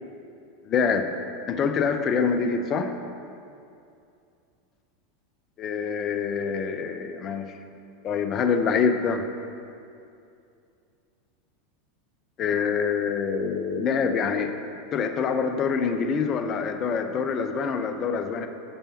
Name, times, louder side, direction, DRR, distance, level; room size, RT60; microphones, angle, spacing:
voice 1, 0.6-1.1 1.5-2.9 5.6-7.5 8.0-9.2 12.4-14.5 14.9-18.5, left 6 dB, 40° left, 7 dB, 0.7 m, -25 dB
15.5 x 6.8 x 2.9 m, 2.5 s
hypercardioid pair, 95°, 0 cm